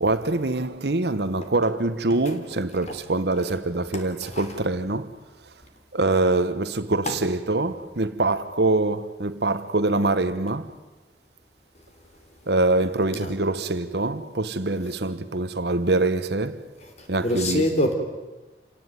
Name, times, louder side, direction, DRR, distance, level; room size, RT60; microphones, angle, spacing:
voice 1, 0.0-5.1 5.9-10.7 12.5-16.7 17.1-17.7, right 2 dB, 65° right, 1.2 m, -24 dB
voice 2, 3.9-4.3 7.1-7.2 13.1-13.3 17.0-17.9, left 1 dB, 40° left, 3.7 m, -25 dB
28.0 x 18.0 x 9.3 m
head